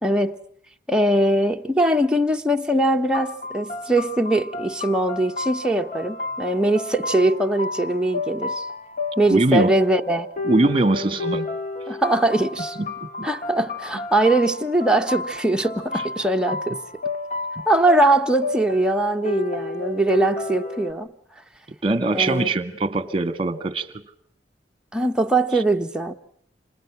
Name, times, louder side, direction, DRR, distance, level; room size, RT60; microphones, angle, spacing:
voice 1, 0.0-0.4 0.9-8.7 9.2-10.3 11.9-12.8 13.2-16.8 17.7-21.1 22.1-22.5 24.9-26.1, right 1 dB, 5° right, 1.2 m, -21 dB
sound 1, 3.1-20.9, left 3 dB, 45° left, 2.8 m, -32 dB
voice 2, 9.3-9.7 10.5-11.5 13.0-13.3 21.8-23.9, right 2 dB, 30° right, 1.8 m, -21 dB
30.0 x 27.0 x 6.1 m
head